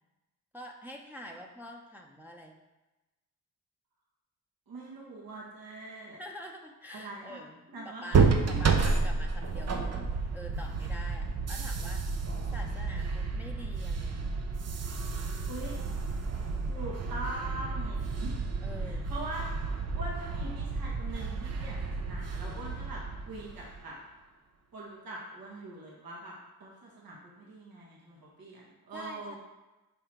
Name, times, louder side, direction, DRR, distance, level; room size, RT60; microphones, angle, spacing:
voice 1, 0.5-2.6 6.2-12.0 12.5-14.4 18.6-19.1 28.9-29.4, left 1 dB, 5° right, 0 dB, 0.8 m, -46 dB
voice 2, 4.7-6.2 6.9-7.4 7.7-8.6 15.5-15.7 16.7-18.4 18.8-24.0 24.7-26.3 26.6-29.4, right 2 dB, 75° right, -4 dB, 1.7 m, -43 dB
sound 1, 8.1-23.8, right 4 dB, 45° right, 0.8 m, -31 dB
5.5 x 4.9 x 4.4 m, 1.1 s
supercardioid pair, 55°, 36 cm